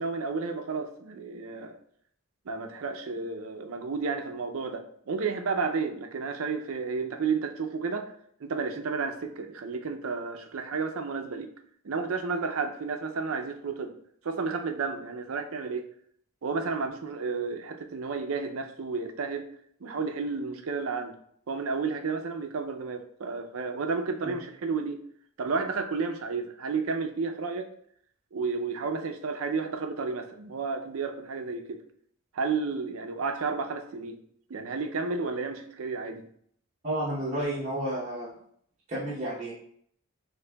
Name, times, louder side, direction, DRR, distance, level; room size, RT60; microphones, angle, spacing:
voice 1, 0.0-1.8 2.5-8.1 8.4-11.5 11.8-13.9 14.2-15.9 16.4-19.5 19.8-21.1 21.5-25.0 25.4-27.7 28.3-31.8 32.3-34.2 34.5-36.2, right 4 dB, 85° right, 5 dB, 0.5 m, -32 dB
voice 2, 36.8-38.3 38.9-39.5, right 1 dB, 35° right, -7 dB, 0.8 m, -31 dB
6.4 x 2.6 x 2.2 m, 0.64 s
head